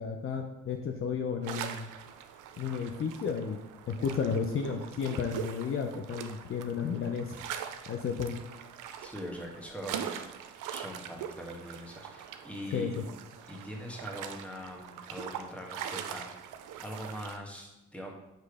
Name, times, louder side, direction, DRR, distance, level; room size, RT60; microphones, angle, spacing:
voice 1, 0.0-1.9 2.6-3.6 3.9-7.4 7.9-8.4 12.7-13.0, left 6 dB, 45° left, 4 dB, 0.6 m, -33 dB
sound 1, 1.4-17.4, right 9 dB, 85° right, 0.6 m, -42 dB
voice 2, 9.0-13.0 13.5-18.1, equal, 5° left, 0 dB, 1.3 m, -42 dB
6.7 x 3.1 x 4.9 m, 0.95 s
cardioid pair, 90°, 30 cm